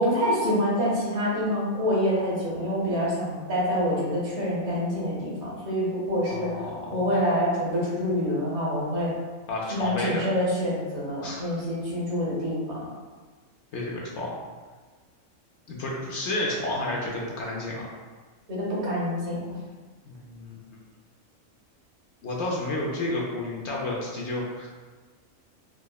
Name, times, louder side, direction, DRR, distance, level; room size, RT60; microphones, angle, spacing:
voice 1, 0.0-6.5 6.9-9.1 9.7-12.8 18.5-19.4, equal, 60° right, -7 dB, 1.2 m, -26 dB
voice 2, 6.3-7.1 9.5-10.3 11.2-11.4 13.7-14.3 15.7-17.9 20.0-20.6 22.2-24.7, left 2 dB, 65° left, -3 dB, 0.8 m, -31 dB
4.7 x 2.0 x 2.2 m, 1.4 s
omnidirectional pair, 1.4 m